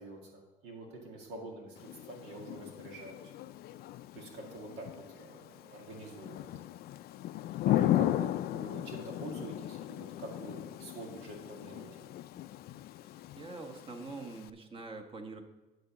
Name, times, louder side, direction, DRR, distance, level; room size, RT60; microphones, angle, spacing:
voice 1, 0.0-3.3 4.1-6.5 7.6-11.9, right 2 dB, 90° right, 1 dB, 1.9 m, -46 dB
Thunder / Rain, 1.8-14.5, left 14 dB, 70° left, 0.4 m, -36 dB
voice 2, 13.4-15.4, right 3 dB, 30° right, 3 dB, 1.1 m, -44 dB
11.0 x 3.9 x 7.2 m, 1.2 s
cardioid pair, 110°, 17 cm